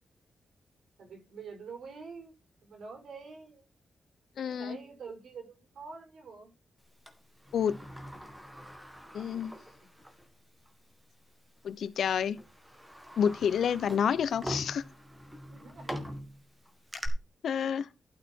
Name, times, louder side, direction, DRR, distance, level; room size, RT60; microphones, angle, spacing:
voice 1, 1.0-2.3 2.6-3.7 4.4-6.5 9.3-9.4 9.8-9.9 15.5-16.2, right 5 dB, 80° right, 5.6 m, -46 dB
voice 2, 4.4-4.8 7.5-7.8 9.1-9.5 11.6-12.4 13.2-14.8 17.4-17.9, left 8 dB, 85° left, 0.9 m, -29 dB
Sliding door, 7.1-10.3 10.6-10.7 11.7-11.9 12.3-17.1, equal, 10° right, 1.9 m, -43 dB
12.5 x 6.7 x 4.6 m
wide cardioid pair, 175°, 0 cm